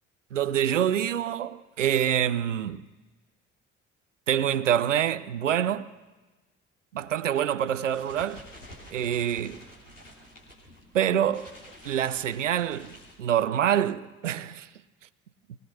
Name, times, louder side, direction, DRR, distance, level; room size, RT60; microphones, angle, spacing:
voice 1, 0.3-2.8 4.3-5.9 6.9-8.4 8.9-9.6 10.9-11.5 11.8-14.7, right 10 dB, 85° right, 0.6 m, -26 dB
sound 1, 7.7-13.7, left 1 dB, 85° left, 3.2 m, -50 dB
23.0 x 19.0 x 6.4 m
figure-of-eight pair, 45°, 36 cm